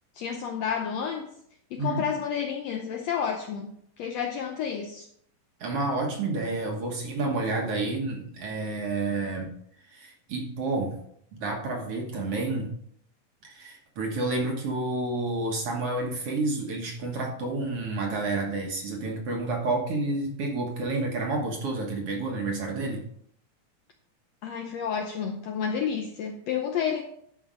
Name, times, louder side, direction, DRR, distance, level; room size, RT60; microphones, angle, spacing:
voice 1, 0.1-1.3 1.7-5.1 24.4-27.0, left 7 dB, 75° left, 4 dB, 1.6 m, -30 dB
voice 2, 5.6-9.5 9.9-11.0 11.3-12.7 13.4-23.0, right 2 dB, 55° right, 1 dB, 2.1 m, -30 dB
12.0 x 5.2 x 5.0 m, 0.68 s
omnidirectional pair, 3.7 m